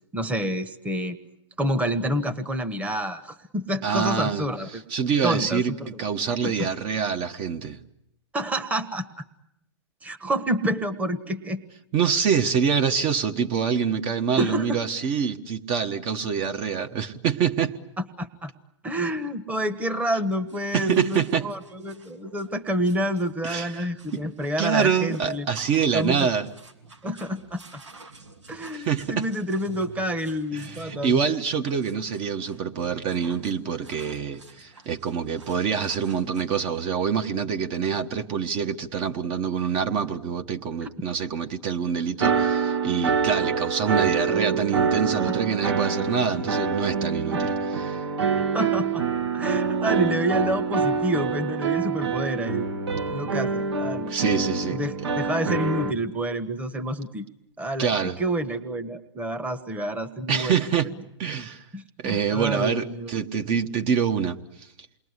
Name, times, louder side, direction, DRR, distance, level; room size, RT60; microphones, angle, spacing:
voice 1, 0.1-1.2 1.6-4.8 5.2-5.9 6.4-6.7 8.3-9.2 10.0-11.6 14.4-14.8 18.2-18.5 18.8-25.5 25.9-26.3 27.0-27.6 28.5-31.3 48.5-49.0 49.3-52.7 53.1-54.1 54.7-57.3 57.6-57.9 58.2-60.6 61.7-63.1, right 1 dB, 10° right, 9 dB, 1.3 m, -28 dB
voice 2, 3.8-4.5 4.9-7.8 11.9-17.7 20.7-21.5 23.4-24.2 24.6-26.5 28.7-29.3 30.5-48.0 54.1-55.1 57.8-58.2 60.3-60.9 61.2-61.6 62.0-64.7, right 7 dB, 35° right, 6 dB, 1.4 m, -26 dB
sound 1, 20.5-36.4, right 3 dB, 85° right, 3.1 m, -49 dB
sound 2, 42.2-55.9, right 5 dB, 70° right, 2.0 m, -26 dB
28.5 x 21.5 x 9.8 m, 0.82 s
hypercardioid pair, 120°, 15 cm